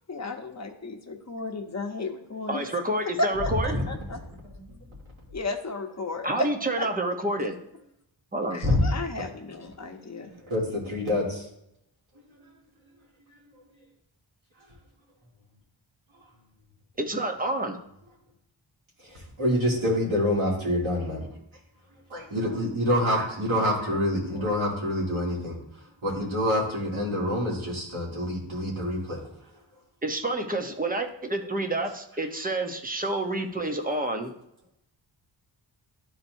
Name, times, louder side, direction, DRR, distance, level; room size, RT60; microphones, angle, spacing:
voice 1, 0.1-2.6 3.2-4.2 5.3-6.5 6.8-6.9 8.5-10.3, left 2 dB, 35° left, 4 dB, 0.9 m, -33 dB
voice 2, 2.5-3.8 6.2-7.6 8.3-8.6 17.0-17.8 30.0-34.3, right 1 dB, 20° right, 4 dB, 0.8 m, -28 dB
voice 3, 4.1-4.6 8.6-8.8 10.4-11.5 19.0-21.3 22.1-29.2, left 1 dB, 80° right, -5 dB, 2.6 m, -27 dB
12.0 x 4.3 x 2.7 m, 0.79 s
wide cardioid pair, 100°, 47 cm